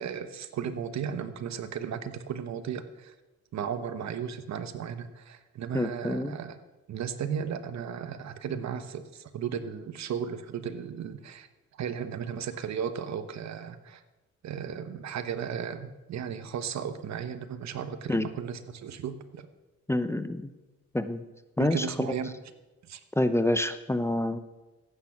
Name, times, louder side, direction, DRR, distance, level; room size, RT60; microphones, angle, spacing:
voice 1, 0.0-3.1 3.5-6.6 6.9-11.5 11.8-14.0 14.4-19.5 21.6-22.3 22.9-23.0, right 7 dB, 65° right, 11 dB, 1.1 m, -35 dB
voice 2, 5.7-6.4 18.1-18.3 19.9-20.5 20.9-21.2 21.6-21.9 23.2-24.4, left 1 dB, 10° left, 11 dB, 0.7 m, -27 dB
15.0 x 8.9 x 6.0 m, 1.1 s
cardioid pair, 90°, 30 cm